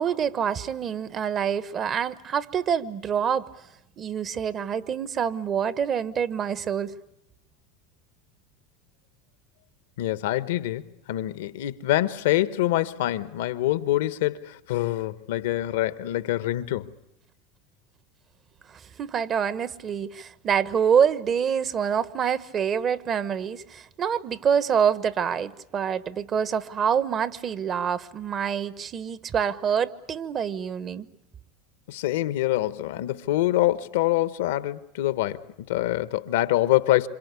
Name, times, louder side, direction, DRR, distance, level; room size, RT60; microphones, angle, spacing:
voice 1, 0.0-3.5 4.0-6.9 18.7-31.1, right 7 dB, 40° right, 1.3 m, -26 dB
voice 2, 10.0-16.9 31.9-37.1, left 15 dB, 75° left, 1.1 m, -25 dB
26.5 x 26.5 x 8.3 m
hypercardioid pair, 85°, 0 cm